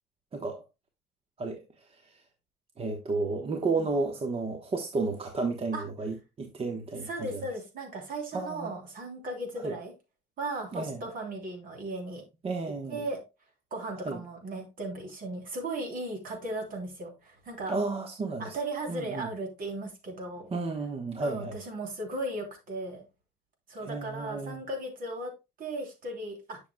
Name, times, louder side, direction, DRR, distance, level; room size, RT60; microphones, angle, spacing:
voice 1, 0.3-0.6 1.4-1.6 1.9-2.2 2.8-7.4 8.3-8.7 9.6-9.7 10.7-11.0 12.4-13.0 14.0-14.2 17.7-18.6 18.9-19.3 20.5-21.6 23.8-24.6, right 3 dB, 35° right, 1.1 m, -32 dB
voice 2, 7.0-9.9 10.4-12.2 12.9-13.2 13.7-17.7 18.4-20.5 21.2-23.0 23.7-25.3 25.6-26.6, right 2 dB, 55° right, 3.1 m, -36 dB
10.0 x 6.6 x 2.2 m
cardioid pair, 110°, 17 cm